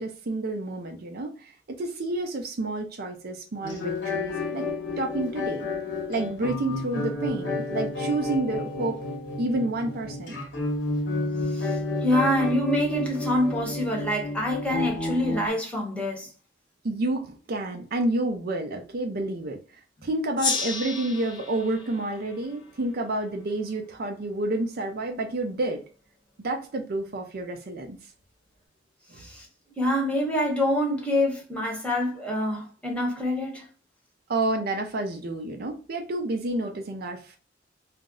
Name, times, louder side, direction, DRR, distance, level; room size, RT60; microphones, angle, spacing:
voice 1, 0.0-4.7 5.0-5.7 6.1-9.0 9.4-10.4 16.8-19.6 20.0-25.8 26.4-28.0 29.1-29.2 34.3-37.4, right 2 dB, 55° right, 0.5 m, -29 dB
sound 1, 3.6-15.5, left 2 dB, 75° left, 0.9 m, -31 dB
voice 2, 11.5-16.3 29.2-29.5 29.8-33.6, left 1 dB, 5° left, 0.9 m, -26 dB
Gong, 20.4-23.5, left 4 dB, 25° left, 0.5 m, -33 dB
2.5 x 2.0 x 3.6 m
head